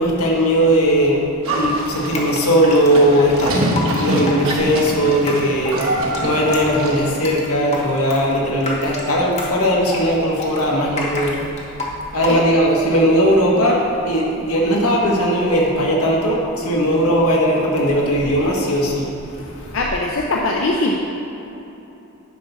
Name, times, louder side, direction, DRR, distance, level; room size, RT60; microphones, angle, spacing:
voice 1, 0.0-11.4 12.1-19.8, equal, 85° left, -2 dB, 1.5 m, -18 dB
Livestock farm animals working animals, 1.4-7.2, right 1 dB, 65° right, 1.3 m, -24 dB
Drip, 1.8-12.8, left 2 dB, 30° left, 1.0 m, -30 dB
voice 2, 19.7-21.0, left 2 dB, 60° left, -1 dB, 0.6 m, -20 dB
9.8 x 5.9 x 4.1 m, 3.0 s
head